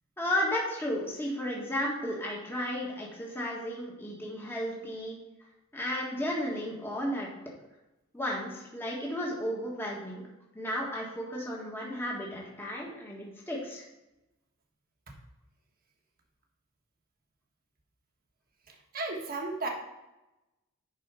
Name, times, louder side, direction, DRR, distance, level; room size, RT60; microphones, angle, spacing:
voice 1, 0.2-5.2 5.7-7.3 8.1-10.2 10.5-13.9, equal, 10° left, -3 dB, 1.6 m, -33 dB
voice 2, 18.7-19.7, right 3 dB, 45° right, 1 dB, 1.5 m, -35 dB
11.0 x 4.4 x 4.8 m, 0.99 s
head